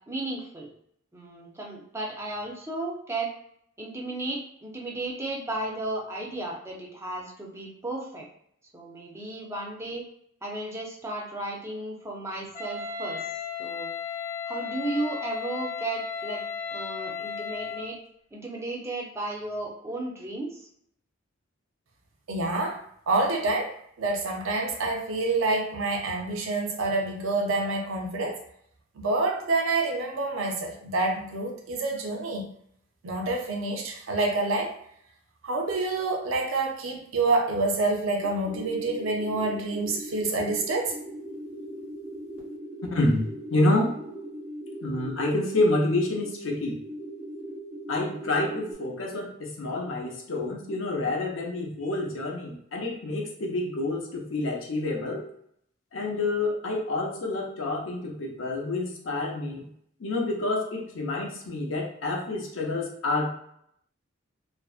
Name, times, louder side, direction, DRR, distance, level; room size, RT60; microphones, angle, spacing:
voice 1, 0.1-0.7 1.1-3.3 3.8-8.3 8.7-10.0 10.4-13.3 13.6-13.9 14.5-16.4 16.7-18.0 18.3-20.7, right 2 dB, 15° right, -2 dB, 0.5 m, -34 dB
Wind instrument woodwind instrument, 12.5-17.9, left 6 dB, 40° left, 0.8 m, -34 dB
voice 2, 22.3-22.8 23.1-28.4 29.0-32.4 33.0-34.7 35.4-40.9, right 2 dB, 70° right, 1 dB, 0.5 m, -27 dB
sound 1, 38.2-48.7, right 1 dB, 85° left, 1.0 m, -39 dB
voice 3, 42.9-43.2 43.5-43.9 44.8-46.8 47.9-55.2 55.9-59.7 60.0-63.3, left 2 dB, 65° left, 0 dB, 0.6 m, -28 dB
2.5 x 2.1 x 2.4 m, 0.70 s
head